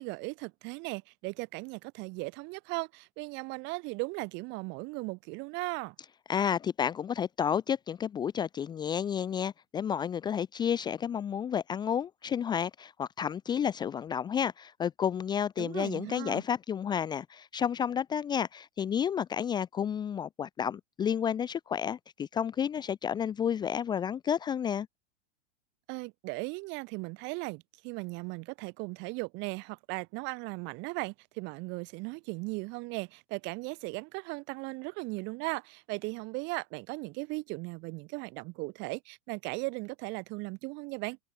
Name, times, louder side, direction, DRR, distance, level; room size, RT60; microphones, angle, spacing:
voice 1, 0.0-5.9 15.6-16.4 25.9-41.2, right 27 dB, 30° right, 3.2 m, -37 dB
voice 2, 6.3-24.9, left 8 dB, 10° left, 1.2 m, -31 dB
supercardioid pair, 170°, 36 cm